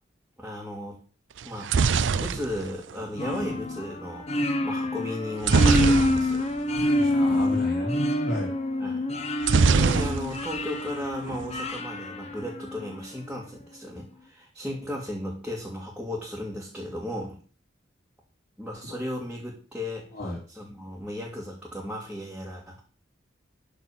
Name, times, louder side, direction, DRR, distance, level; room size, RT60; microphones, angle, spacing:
voice 1, 0.4-1.0 1.4-6.5 8.8-9.0 9.6-17.4 18.6-22.8, left 1 dB, 5° right, -4 dB, 2.1 m, -35 dB
sound 1, 1.4-3.5 5.4-6.6 6.9-7.0 7.3-7.5 9.4-10.6 10.9-11.5, right 5 dB, 75° right, 0.5 m, -23 dB
sound 2, 3.2-13.0, left 1 dB, 35° left, 1.1 m, -27 dB
voice 2, 6.7-8.5 18.9-19.0 20.1-20.4, left 1 dB, 55° left, -6 dB, 3.9 m, -33 dB
12.0 x 4.3 x 7.1 m, 0.40 s
head